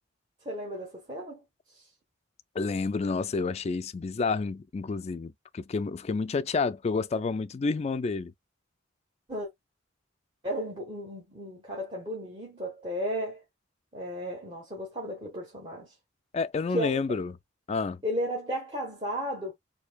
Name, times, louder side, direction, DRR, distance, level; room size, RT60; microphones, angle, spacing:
voice 1, 0.4-1.4 1.7-1.8 9.3-9.5 10.4-13.4 13.9-15.9 16.7-17.0 18.0-19.5, equal, 25° right, 1.2 m, -34 dB
voice 2, 2.6-8.3 16.3-17.3 17.7-18.0, left 4 dB, 35° left, 0.3 m, -29 dB
4.5 x 2.7 x 2.2 m
head